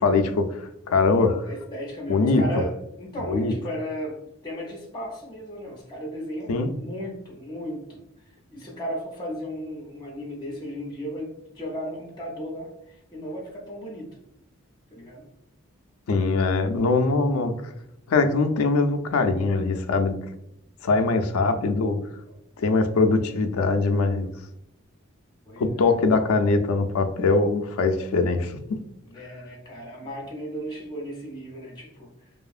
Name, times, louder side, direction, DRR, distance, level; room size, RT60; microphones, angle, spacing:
voice 1, 0.0-1.4 2.1-2.4 3.3-3.5 6.5-6.7 16.1-17.5 18.1-20.2 20.8-22.0 22.6-24.3 25.6-28.8, left 3 dB, 85° left, 7 dB, 0.4 m, -22 dB
voice 2, 1.4-8.0 8.5-14.1 14.9-15.3 20.9-21.1 25.5-25.9 29.1-32.1, equal, 20° left, -2 dB, 0.5 m, -35 dB
2.7 x 2.4 x 2.4 m, 0.81 s
head